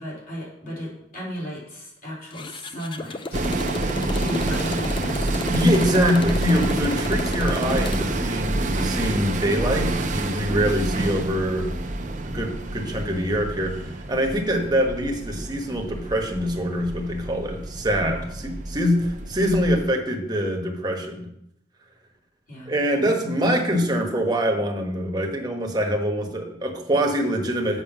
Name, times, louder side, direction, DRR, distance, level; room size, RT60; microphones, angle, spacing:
voice 1, 0.0-3.5 4.1-5.4 10.4-10.5 18.0-18.2 22.5-22.7, equal, 50° left, -4 dB, 3.9 m, -34 dB
Motorcycle, 2.3-8.2, left 2 dB, 30° left, 0.5 m, -34 dB
sound 1, 3.3-19.9, right 2 dB, 45° right, 0.8 m, -28 dB
voice 2, 5.5-11.7 12.2-21.3 22.7-27.8, equal, 25° right, 2 dB, 1.3 m, -24 dB
7.2 x 6.2 x 6.1 m, 0.77 s
head